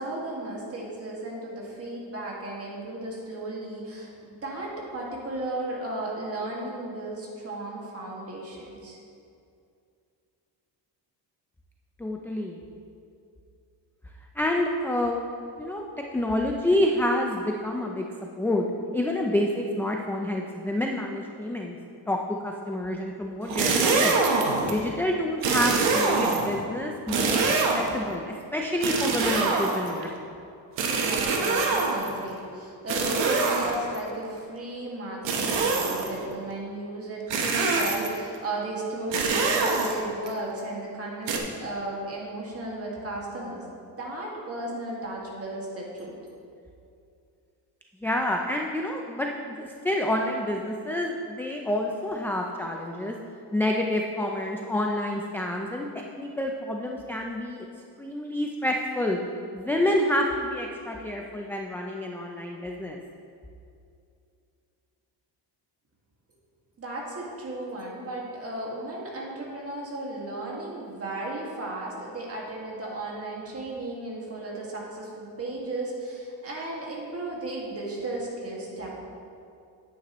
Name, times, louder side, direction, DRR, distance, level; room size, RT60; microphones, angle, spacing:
voice 1, 0.0-9.0 30.9-41.3 41.6-43.6 44.0-46.2 66.8-79.0, right 2 dB, 30° right, -3 dB, 2.0 m, -35 dB
voice 2, 12.0-12.6 14.3-15.2 15.6-18.0 18.4-18.7 18.9-21.8 22.1-24.2 24.6-30.1 48.0-53.2 53.5-57.7 58.0-59.2 59.5-63.0, left 1 dB, 5° left, 1 dB, 0.4 m, -28 dB
sound 1, 23.4-24.8 25.4-26.6 27.1-28.0 28.8-30.0 30.8-32.2 32.9-34.0 35.3-36.2 37.3-38.2 39.1-40.3 41.3-41.4, right 4 dB, 80° right, 1.2 m, -25 dB
9.5 x 9.0 x 3.1 m, 2.5 s
cardioid pair, 125°, 44 cm